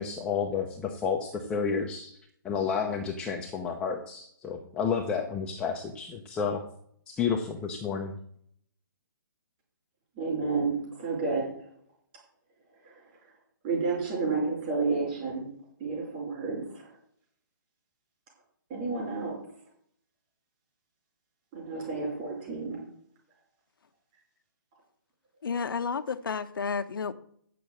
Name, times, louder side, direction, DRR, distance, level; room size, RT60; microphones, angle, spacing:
voice 1, 0.0-2.2 2.4-6.6 7.1-8.1, left 6 dB, 10° left, 0.7 m, -31 dB
voice 2, 10.2-11.5 12.8-12.9 13.6-15.5 15.8-16.9 18.7-19.4 21.5-22.8, right 4 dB, 25° right, 5.0 m, -30 dB
voice 3, 25.4-27.1, left 5 dB, 80° left, 0.9 m, -31 dB
8.6 x 7.0 x 7.8 m
hypercardioid pair, 165°, 11 cm